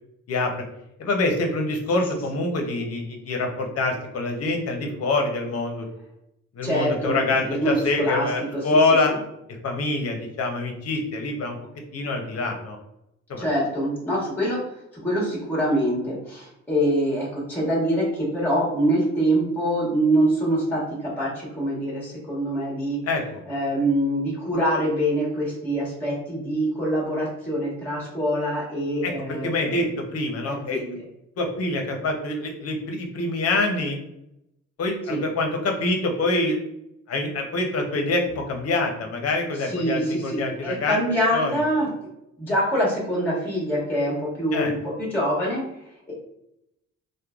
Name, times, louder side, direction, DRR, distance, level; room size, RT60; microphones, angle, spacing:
voice 1, 0.3-0.6 1.0-5.8 6.5-9.1 9.6-11.6 11.9-12.8 13.3-13.4 23.1-23.2 29.0-29.1 29.4-30.8 31.4-34.0 34.8-36.6 37.1-41.0 41.3-41.6 44.5-44.7, left 2 dB, 55° left, 3 dB, 0.7 m, -25 dB
voice 2, 6.6-8.7 9.1-9.2 13.4-23.0 23.5-29.9 30.5-31.0 35.0-35.2 39.5-42.1 42.4-46.1, right 1 dB, 5° left, -6 dB, 1.2 m, -25 dB
3.0 x 2.2 x 2.4 m, 0.82 s
cardioid pair, 90°, 30 cm